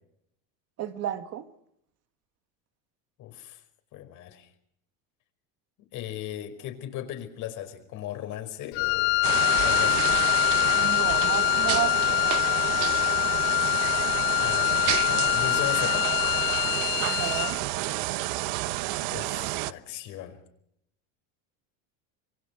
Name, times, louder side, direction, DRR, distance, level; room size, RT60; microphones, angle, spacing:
voice 1, 0.8-1.5 10.7-12.5 17.0-17.6, right 11 dB, 40° right, 9 dB, 1.8 m, -32 dB
voice 2, 3.2-3.6 3.9-4.5 5.9-9.3 9.6-10.1 14.4-16.1 19.1-20.4, left 11 dB, 50° left, 7 dB, 5.2 m, -37 dB
Wind instrument woodwind instrument, 8.7-17.6, left 19 dB, 70° left, 1.1 m, -24 dB
sound 1, 9.2-19.7, right 19 dB, 65° right, 1.1 m, -30 dB
27.0 x 24.0 x 6.3 m, 0.75 s
cardioid pair, 150°, 39 cm